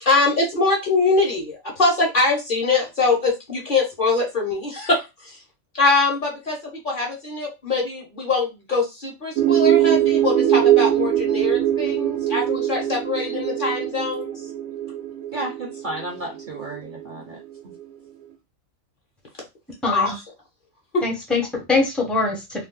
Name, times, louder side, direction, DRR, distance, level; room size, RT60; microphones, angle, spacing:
voice 1, 0.0-5.4 5.7-14.3 19.9-20.1 20.9-21.0, left 3 dB, 45° left, -1 dB, 0.8 m, -23 dB
sound 1, 9.4-17.1, right 11 dB, 85° right, 1.0 m, -21 dB
voice 2, 15.3-17.7, right 1 dB, 50° right, -1 dB, 0.7 m, -33 dB
voice 3, 19.8-20.1 21.0-22.7, left 3 dB, ahead, 0 dB, 0.5 m, -23 dB
2.5 x 2.2 x 3.6 m, 0.24 s
omnidirectional pair, 1.4 m